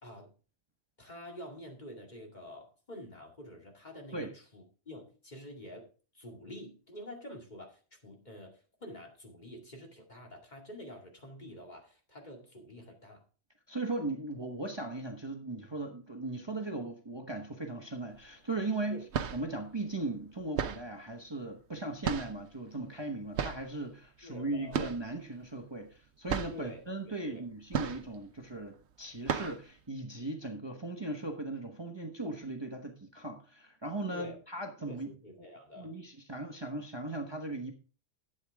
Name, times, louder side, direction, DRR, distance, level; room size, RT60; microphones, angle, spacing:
voice 1, 0.0-0.3 1.0-5.9 6.1-13.2 18.9-19.0 24.2-24.8 26.5-26.8 27.3-27.4 34.1-34.4 34.9-35.9, equal, 40° left, 1 dB, 2.4 m, -48 dB
voice 2, 13.7-19.0 19.3-35.1 35.4-35.5 35.8-37.7, right 2 dB, 25° right, 3 dB, 1.1 m, -38 dB
sound 1, 18.1-18.3 18.9-19.6 20.5-21.0 22.0-22.5 23.3-23.7 24.7-25.1 25.4-25.5 25.9-26.0 26.3-26.7 27.7-28.3 28.7-28.8 29.2-29.7, right 7 dB, 70° right, 1.0 m, -34 dB
12.0 x 8.1 x 3.5 m, 0.36 s
omnidirectional pair, 1.2 m